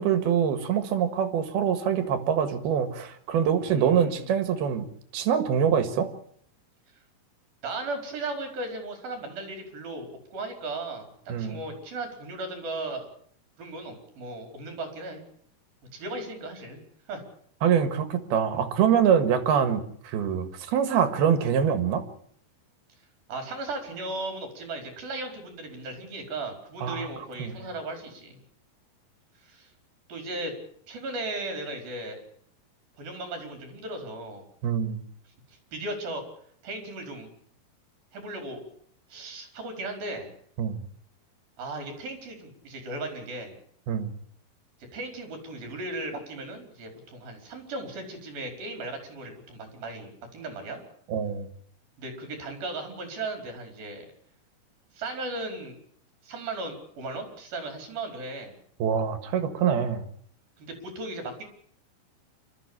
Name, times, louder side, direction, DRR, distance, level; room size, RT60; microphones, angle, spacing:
voice 1, 0.0-4.9 5.1-6.1 11.3-11.6 17.6-22.1 26.8-27.1 27.4-27.5 34.6-35.0 40.6-40.8 43.9-44.1 51.1-51.5 58.8-60.1, right 8 dB, 90° right, 11 dB, 3.7 m, -24 dB
voice 2, 3.6-4.3 7.6-11.1 11.4-13.1 13.6-15.2 15.9-16.8 17.1-17.2 23.3-28.4 29.4-29.7 30.1-30.5 30.9-32.2 33.0-34.4 35.5-36.2 36.6-37.3 38.1-38.6 39.1-40.3 41.6-43.6 44.9-50.8 52.0-54.1 54.9-55.7 56.2-58.5 60.6-61.4, right 2 dB, 70° right, 5 dB, 6.5 m, -36 dB
27.5 x 13.5 x 8.8 m, 0.64 s
omnidirectional pair, 4.3 m